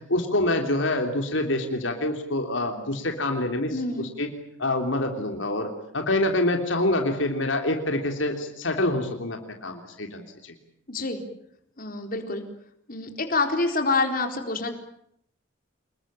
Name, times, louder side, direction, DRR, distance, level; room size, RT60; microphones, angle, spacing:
voice 1, 0.0-4.3 4.6-10.5, left 1 dB, 70° left, 4 dB, 3.3 m, -26 dB
voice 2, 3.7-4.1 10.9-11.2 11.8-12.4 12.9-14.7, left 3 dB, 45° left, 5 dB, 4.1 m, -27 dB
26.5 x 22.0 x 8.8 m, 0.72 s
head